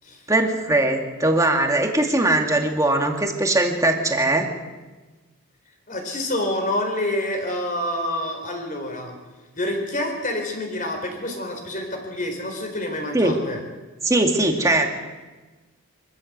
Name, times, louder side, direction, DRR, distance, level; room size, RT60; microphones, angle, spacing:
voice 1, 0.3-4.5 13.1-13.4 14.0-15.0, right 2 dB, 15° right, 3 dB, 2.2 m, -20 dB
voice 2, 5.9-9.2 9.6-13.6, left 1 dB, 35° left, 3 dB, 4.3 m, -27 dB
24.5 x 13.5 x 8.1 m, 1.2 s
head